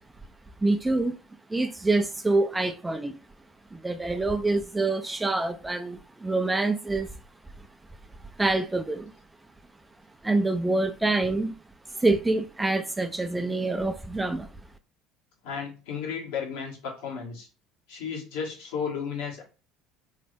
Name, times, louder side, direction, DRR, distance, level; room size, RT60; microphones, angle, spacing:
voice 1, 0.6-1.2 1.5-3.2 3.7-7.1 7.6-7.7 8.4-9.1 10.2-11.6 11.9-14.5, right 2 dB, 15° right, 0.6 m, -26 dB
voice 2, 15.4-17.5 17.9-19.4, left 6 dB, 75° left, 1.6 m, -33 dB
3.9 x 3.3 x 3.4 m
hypercardioid pair, 65°, 0 cm